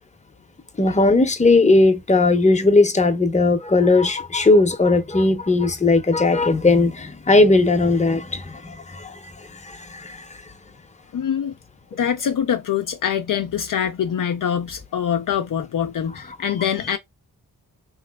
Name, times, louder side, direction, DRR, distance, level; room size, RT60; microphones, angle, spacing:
voice 1, 0.8-10.4, left 3 dB, 20° left, 0.7 m, -18 dB
voice 2, 11.1-11.5 11.9-17.0, left 8 dB, 60° left, 0.5 m, -24 dB
3.1 x 3.0 x 2.2 m
cardioid pair, 55°, 37 cm